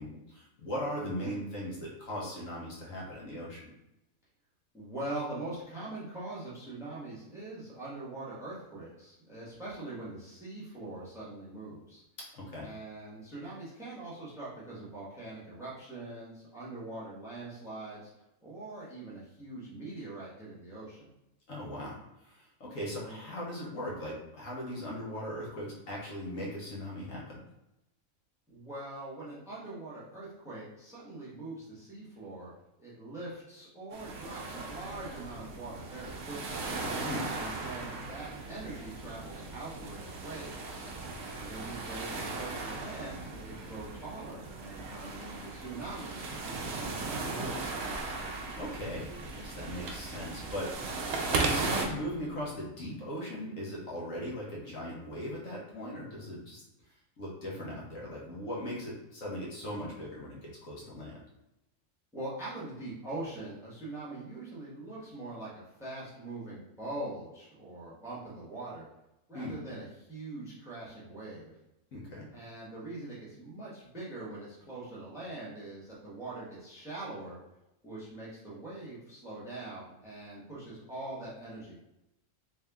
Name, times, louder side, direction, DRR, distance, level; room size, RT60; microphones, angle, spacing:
voice 1, 0.0-3.7 12.3-12.7 21.5-27.4 37.0-37.3 48.0-50.7 51.2-56.6 57.2-61.2 69.3-69.5 71.9-72.3, equal, 65° left, -4 dB, 1.3 m, -39 dB
voice 2, 1.0-1.3 4.7-12.0 12.6-18.1 18.4-21.1 22.9-23.2 28.5-32.5 32.8-36.7 37.3-47.6 62.1-68.9 69.3-71.5 72.3-77.4 77.8-81.8, right 2 dB, ahead, -7 dB, 1.0 m, -43 dB
sound 1, 33.9-51.9, right 3 dB, 60° right, 0.7 m, -38 dB
Telephone, 47.8-52.5, right 4 dB, 90° right, 1.1 m, -37 dB
3.4 x 2.7 x 3.4 m, 0.91 s
omnidirectional pair, 1.5 m